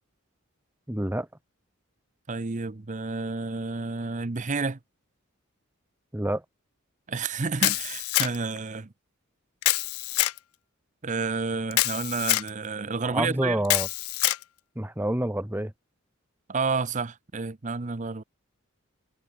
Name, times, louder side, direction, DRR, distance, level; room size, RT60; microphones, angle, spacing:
voice 1, 0.9-1.3 6.1-6.4 13.0-13.9 14.8-15.7, right 1 dB, 10° right, 1.2 m, -27 dB
voice 2, 2.3-4.8 7.1-8.9 11.0-13.6 16.5-18.2, right 4 dB, 35° right, 0.7 m, -30 dB
Camera, 7.6-8.6 9.6-10.4 11.7-12.5 13.6-14.4, left 18 dB, 85° left, 0.4 m, -25 dB
head